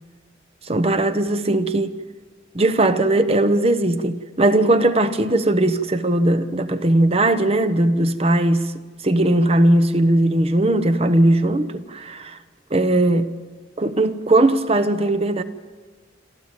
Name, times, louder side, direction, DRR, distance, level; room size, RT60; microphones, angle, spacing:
voice 1, 0.6-1.9 2.5-8.7 9.0-12.4 12.7-13.3 13.8-15.4, right 1 dB, 35° right, 0.9 m, -18 dB
27.0 x 13.5 x 8.9 m
head